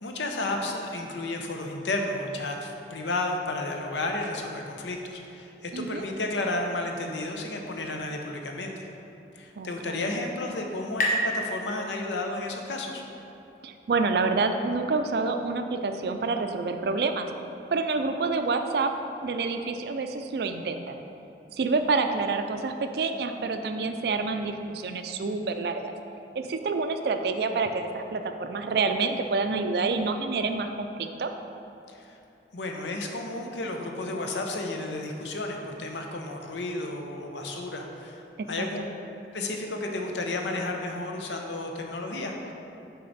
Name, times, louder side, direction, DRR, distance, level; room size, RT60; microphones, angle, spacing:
voice 1, 0.0-8.9 9.3-13.0 31.9-32.2 32.5-38.2 38.5-38.8 39.3-42.5, left 2 dB, 85° left, 2 dB, 0.7 m, -32 dB
voice 2, 5.7-6.1 9.6-10.1 13.6-17.3 17.7-18.9 19.2-21.0 21.5-25.9 26.3-31.3 38.4-38.7, right 4 dB, 60° right, 7 dB, 0.4 m, -28 dB
sound 1, 9.5-12.9, equal, 45° left, 0.9 m, -33 dB
6.5 x 4.6 x 4.0 m, 2.8 s
head